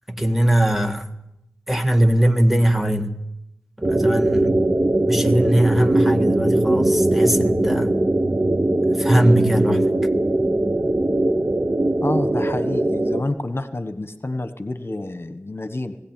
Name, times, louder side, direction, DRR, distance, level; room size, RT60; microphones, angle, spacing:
voice 1, 0.1-1.1 1.7-3.1 3.8-4.6 5.1-7.9 8.9-9.8, right 1 dB, 5° right, 5 dB, 1.8 m, -20 dB
sound 1, 3.8-13.2, right 1 dB, 35° right, 1.1 m, -20 dB
voice 2, 12.0-16.0, left 2 dB, 45° left, 9 dB, 1.3 m, -28 dB
20.0 x 16.0 x 9.1 m, 0.87 s
wide cardioid pair, 55°, 5 cm